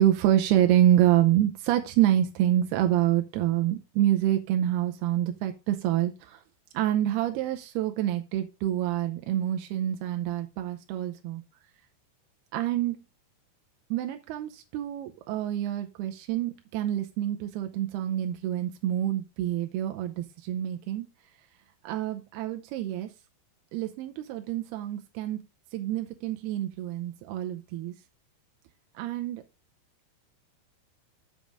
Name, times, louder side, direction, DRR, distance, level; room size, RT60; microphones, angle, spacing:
voice 1, 0.0-6.4 6.7-11.4 12.5-13.0 13.9-21.1 21.8-23.1 23.7-25.4 25.7-27.9 29.0-29.4, right 12 dB, 85° right, 5 dB, 2.7 m, -27 dB
7.5 x 7.2 x 3.7 m, 0.26 s
omnidirectional pair, 4.6 m